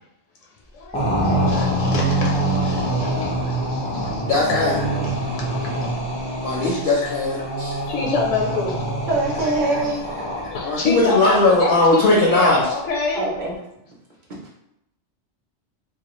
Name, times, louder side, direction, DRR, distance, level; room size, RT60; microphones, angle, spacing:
voice 1, 0.7-4.2 4.5-5.7 7.0-7.1 7.8-9.1 9.3-9.6 10.4-13.3, left 4 dB, 85° left, -2 dB, 0.9 m, -27 dB
sound 1, 0.9-10.8, right 1 dB, 10° left, 0.4 m, -24 dB
voice 2, 4.3-4.7 6.4-7.8 10.6-12.6, left 2 dB, 60° left, -3 dB, 0.6 m, -18 dB
voice 3, 9.1-10.3 13.1-13.6 14.3-14.4, right 2 dB, 50° right, -3 dB, 0.7 m, -24 dB
2.4 x 2.2 x 2.9 m, 0.81 s
omnidirectional pair, 1.2 m